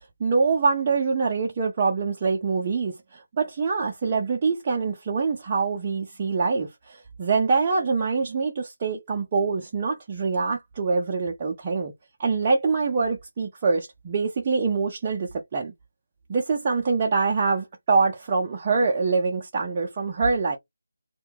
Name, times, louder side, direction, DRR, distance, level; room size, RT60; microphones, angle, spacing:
voice 1, 0.2-11.9 12.2-15.7 16.3-20.6, right 4 dB, 25° right, 0.5 m, -24 dB
2.8 x 2.1 x 3.6 m
figure-of-eight pair, 165°, 0 cm